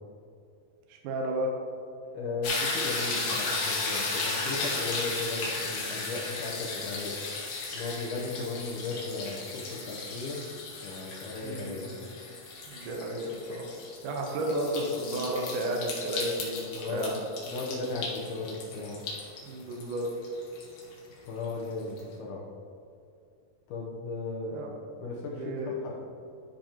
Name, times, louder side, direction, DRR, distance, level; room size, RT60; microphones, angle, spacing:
voice 1, 0.9-1.5 11.4-12.2 12.7-13.6 14.0-17.2 19.4-20.1 24.5-24.7 25.3-25.7, right 1 dB, 75° right, 0 dB, 1.9 m, -32 dB
voice 2, 2.1-7.1 7.7-10.4 10.8-11.9 16.7-17.1 17.4-19.0 21.3-22.4 23.7-25.9, left 3 dB, 80° left, -3 dB, 1.8 m, -36 dB
sound 1, 2.4-21.5 22.0-22.1, left 3 dB, 60° left, 2.2 m, -35 dB
12.5 x 5.1 x 2.9 m, 2.5 s
omnidirectional pair, 4.8 m